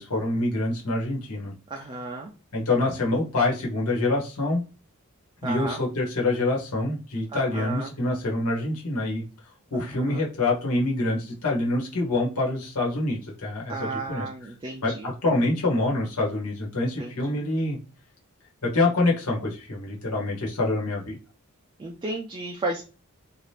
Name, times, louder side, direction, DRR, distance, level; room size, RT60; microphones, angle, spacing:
voice 1, 0.0-1.5 1.8-1.9 2.5-4.6 5.4-9.2 9.7-14.5 14.8-17.8 18.6-21.2, left 2 dB, 80° left, -2 dB, 1.2 m, -26 dB
voice 2, 1.7-2.3 5.4-5.8 7.3-7.9 9.7-10.2 13.7-15.1 17.0-17.1 21.8-22.8, right 2 dB, 20° right, 1 dB, 0.3 m, -33 dB
2.8 x 2.4 x 3.3 m, 0.34 s
head